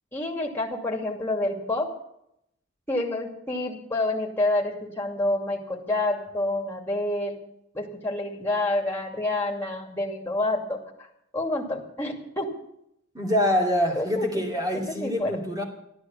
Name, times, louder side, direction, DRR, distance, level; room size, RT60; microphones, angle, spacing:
voice 1, 0.1-1.9 2.9-7.4 7.7-10.8 11.3-12.5 14.0-14.4 14.9-15.3, left 2 dB, 10° left, 0 dB, 2.6 m, -28 dB
voice 2, 13.1-15.6, equal, 20° right, 0 dB, 2.5 m, -25 dB
13.0 x 12.5 x 7.2 m, 0.78 s
head